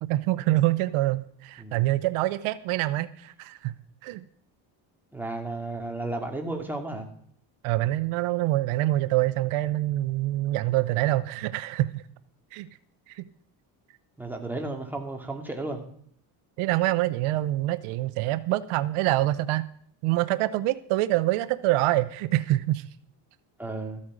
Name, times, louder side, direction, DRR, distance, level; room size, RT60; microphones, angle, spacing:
voice 1, 0.0-3.7 4.0-4.2 7.6-12.0 12.5-12.7 13.1-13.3 16.6-19.6 20.0-22.8, right 16 dB, 90° right, 14 dB, 0.8 m, -25 dB
voice 2, 1.6-1.9 5.1-7.1 14.2-15.8 23.6-24.0, right 2 dB, 5° right, 1 dB, 2.5 m, -33 dB
14.0 x 8.7 x 4.9 m, 0.63 s
cardioid pair, 105°, 48 cm